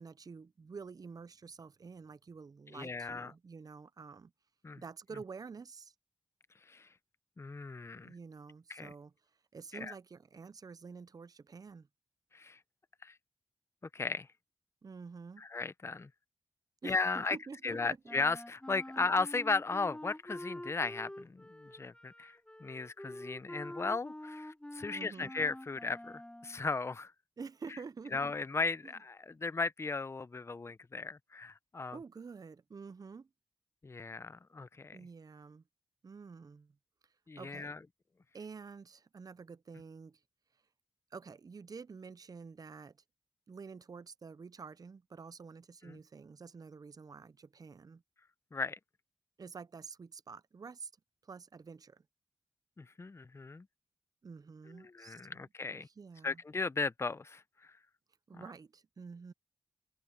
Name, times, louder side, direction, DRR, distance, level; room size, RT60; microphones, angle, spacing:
voice 1, 0.0-4.3 4.8-5.9 8.0-9.1 9.5-11.9 14.8-15.5 16.8-18.0 19.0-19.1 24.9-25.3 27.4-28.3 28.8-28.9 31.9-33.3 34.9-35.6 36.0-36.8 37.0-37.7 38.3-40.2 41.1-43.0 43.5-48.0 49.4-50.9 51.2-52.0 54.2-56.4 58.3-59.3, right 5 dB, 45° right, 0.6 m, -49 dB
voice 2, 2.7-3.3 4.6-4.8 6.7-6.9 7.4-8.1 8.7-8.9 9.7-9.9 12.3-12.6 13.0-13.1 13.9-14.3 15.4-16.1 16.8-17.4 17.6-27.1 28.1-32.0 33.8-35.0 37.3-37.8 45.9-46.0 48.5-48.8 52.8-53.6 54.8-55.9 56.2-57.7 58.3-58.4, left 4 dB, 30° left, 0.6 m, -36 dB
Wind instrument woodwind instrument, 18.0-26.6, left 1 dB, 10° left, 2.8 m, -47 dB
cardioid pair, 55°, 9 cm